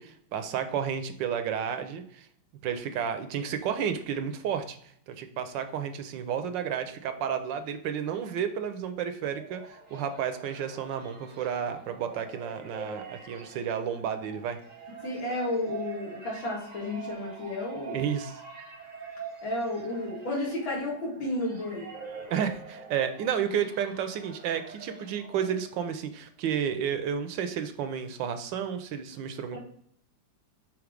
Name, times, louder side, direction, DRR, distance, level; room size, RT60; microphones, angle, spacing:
voice 1, 0.0-2.3 2.6-4.8 5.1-14.6 17.9-18.3 22.3-29.6, right 8 dB, 75° right, 9 dB, 1.3 m, -31 dB
sound 1, 9.1-26.0, right 5 dB, 30° right, 0.7 m, -45 dB
voice 2, 15.0-18.0 19.4-21.9 29.5-29.6, left 2 dB, 80° left, -3 dB, 2.7 m, -32 dB
6.0 x 3.6 x 5.0 m, 0.66 s
omnidirectional pair, 2.1 m